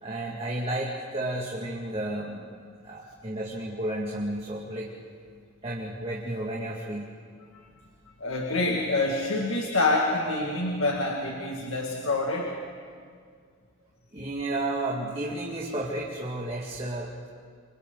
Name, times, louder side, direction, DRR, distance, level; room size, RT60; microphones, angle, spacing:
voice 1, 0.0-2.4 2.8-4.9 5.6-7.1 14.1-17.3, right 1 dB, 30° right, -4 dB, 2.0 m, -32 dB
voice 2, 8.2-12.5, left 2 dB, 70° left, 0 dB, 2.1 m, -26 dB
29.5 x 26.0 x 4.0 m, 2.1 s
head